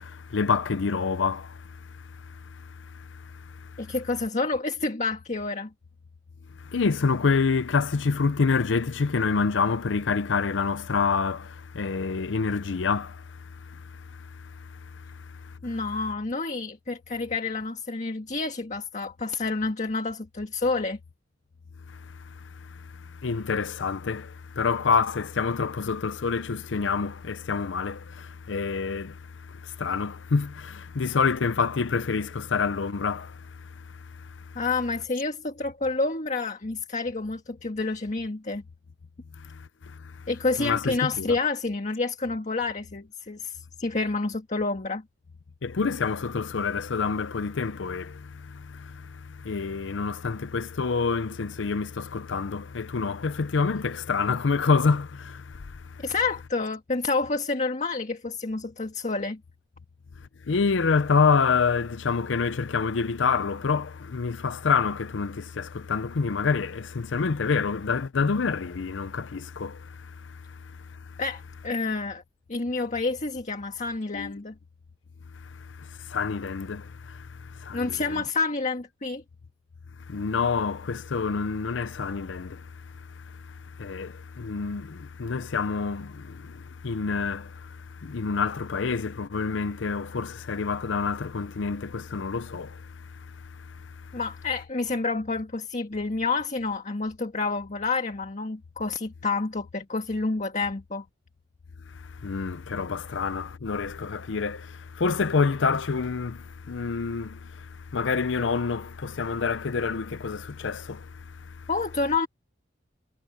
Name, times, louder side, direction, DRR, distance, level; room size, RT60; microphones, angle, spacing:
voice 1, 0.0-1.8 2.1-3.9 6.6-15.5 22.2-33.8 34.2-34.6 39.4-40.1 40.6-41.3 45.6-56.0 60.5-70.6 71.1-71.2 74.1-74.3 75.4-78.1 80.1-82.7 82.9-93.3 93.6-94.1 102.0-111.7, left 5 dB, 85° left, 0.6 m, -28 dB
voice 2, 3.8-5.7 15.6-21.0 34.5-38.6 40.3-45.0 56.0-59.4 71.2-72.2 72.5-74.5 77.7-79.2 94.1-101.0 111.7-112.3, left 3 dB, 40° left, 1.6 m, -29 dB
head